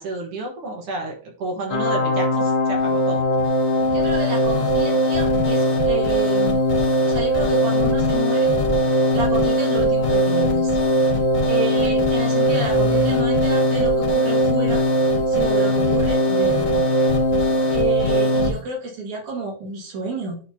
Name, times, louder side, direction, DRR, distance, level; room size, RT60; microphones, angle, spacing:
voice 1, 0.0-3.2 9.8-9.9 18.6-18.7, right 2 dB, 55° right, 1 dB, 2.0 m, -30 dB
sound 1, 1.7-18.5, equal, 85° left, 1.1 m, -20 dB
sound 2, 2.7-18.6, left 3 dB, 45° left, 2.4 m, -30 dB
voice 2, 3.9-6.6 7.0-8.5 9.1-10.8 11.5-14.8 15.3-16.8 17.7-20.4, right 3 dB, 75° right, -1 dB, 3.4 m, -31 dB
11.5 x 4.1 x 2.8 m, 0.40 s
omnidirectional pair, 3.4 m